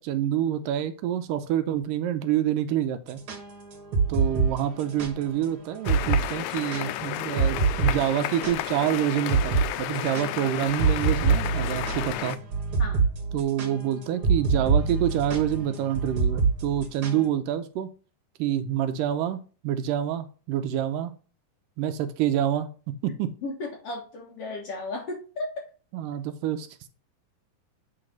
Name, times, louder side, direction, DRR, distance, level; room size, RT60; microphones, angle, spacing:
voice 1, 0.0-3.2 4.1-12.4 13.3-17.9 18.4-21.1 21.8-22.7 23.0-23.3 25.9-26.7, right 10 dB, 80° right, 10 dB, 2.2 m, -27 dB
sound 1, 3.1-5.1 5.4-5.5 5.9-6.2 6.5-8.9 9.3-9.7 9.9-17.2, right 5 dB, 55° right, 1.7 m, -25 dB
sound 2, 5.8-12.4, left 14 dB, 90° left, 1.7 m, -32 dB
voice 2, 12.8-13.1 23.4-25.5, left 2 dB, 55° left, 1 dB, 1.9 m, -35 dB
8.9 x 3.9 x 5.2 m, 0.37 s
omnidirectional pair, 4.0 m